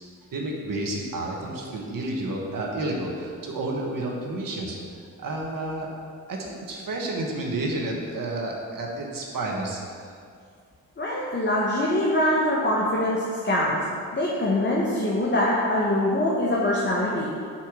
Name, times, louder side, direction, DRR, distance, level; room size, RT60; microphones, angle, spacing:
voice 1, 0.3-4.8 5.2-5.9 6.3-10.1, right 2 dB, 60° right, -1 dB, 1.3 m, -30 dB
voice 2, 11.0-13.8 14.1-17.3, left 1 dB, 30° left, -5 dB, 1.3 m, -23 dB
5.6 x 4.3 x 6.3 m, 2.2 s
hypercardioid pair, 45°, 37 cm